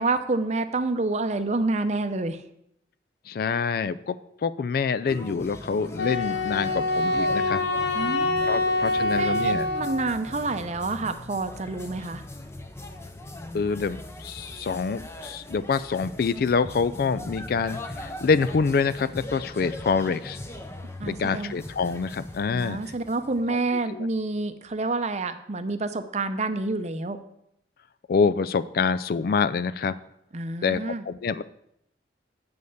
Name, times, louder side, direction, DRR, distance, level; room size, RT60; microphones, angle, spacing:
voice 1, 0.0-2.4 7.9-12.2 21.0-21.6 22.5-27.2 30.3-31.0, right 3 dB, 40° right, 9 dB, 0.6 m, -28 dB
voice 2, 3.3-4.2 4.4-7.6 8.5-9.7 13.5-20.4 21.1-22.8 23.5-23.6 23.9-24.1 28.1-30.0 30.6-31.4, left 5 dB, 55° left, 14 dB, 0.3 m, -26 dB
sound 1, 5.1-23.6, left 1 dB, 15° left, 0.6 m, -40 dB
Wind instrument woodwind instrument, 6.0-10.2, left 2 dB, 75° left, 0.8 m, -25 dB
7.8 x 5.5 x 6.6 m, 0.76 s
head